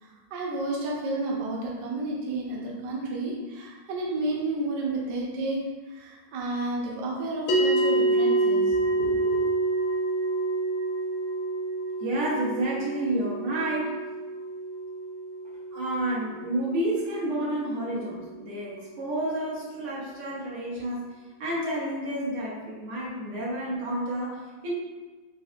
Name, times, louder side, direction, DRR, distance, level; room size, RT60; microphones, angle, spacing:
voice 1, 0.0-5.6 5.9-9.5, right 2 dB, 60° right, -3 dB, 1.2 m, -31 dB
sound 1, 7.5-18.0, right 2 dB, 65° left, 0.8 m, -28 dB
voice 2, 12.0-14.0 15.7-21.1 21.4-24.7, right 1 dB, 80° right, -5 dB, 2.1 m, -30 dB
5.0 x 4.4 x 2.4 m, 1.3 s
omnidirectional pair, 2.4 m